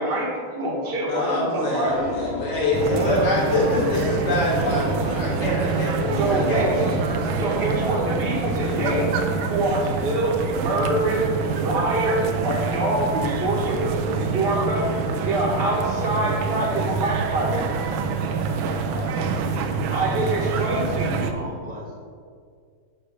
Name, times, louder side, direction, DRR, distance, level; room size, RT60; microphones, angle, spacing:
voice 1, 0.0-2.0 2.8-3.2 6.2-6.8 7.4-9.1 9.4-11.2 11.5-17.5 19.9-21.3, right 1 dB, 30° right, -1 dB, 1.5 m, -25 dB
voice 2, 1.1-7.1, left 1 dB, 35° left, -6 dB, 2.3 m, -25 dB
sound 1, 1.8-10.2, left 4 dB, 75° left, 1.6 m, -34 dB
voice 3, 1.9-2.4 3.0-4.0 11.4-11.6 13.5-13.8 16.5-16.7 17.4-17.7 18.2-20.9 21.2-22.0, right 1 dB, 5° right, -2 dB, 0.9 m, -38 dB
sound 2, 2.7-21.3, right 5 dB, 85° right, 1.5 m, -26 dB
10.0 x 3.4 x 6.7 m, 2.1 s
omnidirectional pair, 2.2 m